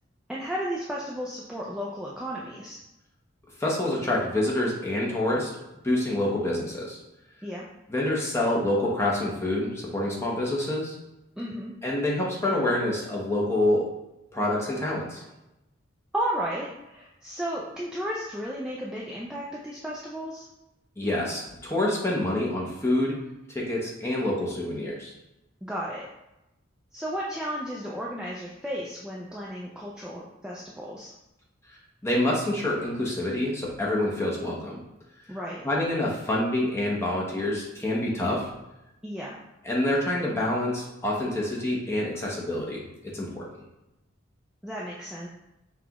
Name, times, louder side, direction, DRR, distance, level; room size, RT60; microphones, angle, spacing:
voice 1, 0.3-2.8 7.4-7.6 11.4-11.7 16.1-20.4 25.6-26.1 26.9-31.1 35.3-35.6 39.0-39.4 44.6-45.3, equal, 5° right, -5 dB, 0.3 m, -33 dB
voice 2, 3.6-5.5 5.8-7.0 7.9-11.0 11.8-13.8 14.3-15.2 21.0-23.2 23.5-25.1 32.0-34.7 35.6-38.5 39.6-42.8 43.1-43.4, left 1 dB, 15° left, -4 dB, 0.8 m, -27 dB
5.8 x 2.3 x 2.9 m, 0.94 s
head